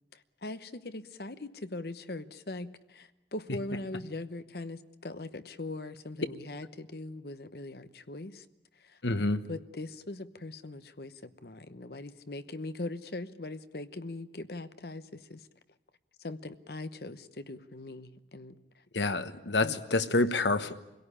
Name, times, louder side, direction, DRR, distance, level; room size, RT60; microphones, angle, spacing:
voice 1, 0.4-8.4 8.8-15.4 16.2-18.6 19.6-19.8, left 2 dB, 60° left, 12 dB, 1.0 m, -41 dB
voice 2, 9.0-9.4 18.9-20.7, left 2 dB, 80° left, 10 dB, 1.2 m, -27 dB
25.5 x 17.5 x 10.0 m, 0.97 s
head